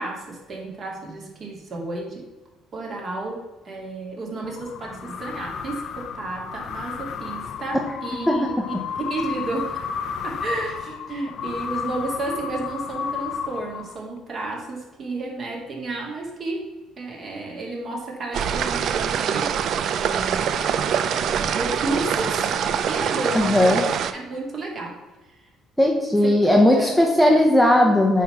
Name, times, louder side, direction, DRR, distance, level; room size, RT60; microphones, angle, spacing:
voice 1, 0.0-2.3 2.7-8.6 9.1-9.8 10.2-16.7 17.0-19.5 20.0-20.6 21.1-22.5 22.9-23.9 24.1-25.0 26.7-27.0, right 2 dB, 40° right, -1 dB, 2.3 m, -32 dB
sound 1, 4.4-14.2, left 7 dB, 55° left, 0.6 m, -32 dB
voice 2, 8.3-8.6 23.3-23.9 25.8-28.2, left 1 dB, ahead, 0 dB, 0.9 m, -17 dB
sound 2, 18.3-24.1, right 8 dB, 55° right, 0.5 m, -24 dB
8.9 x 3.7 x 5.8 m, 1.1 s
cardioid pair, 125°, 0 cm